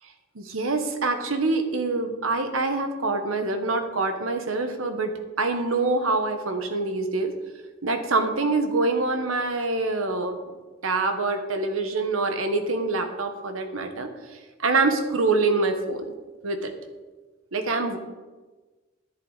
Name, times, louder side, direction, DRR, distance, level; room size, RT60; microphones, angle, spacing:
voice 1, 0.3-7.3 7.8-10.4 10.8-14.1 14.6-16.1 16.4-16.7 17.5-18.0, right 3 dB, 85° right, 7 dB, 1.2 m, -25 dB
11.0 x 10.5 x 4.0 m, 1.3 s
head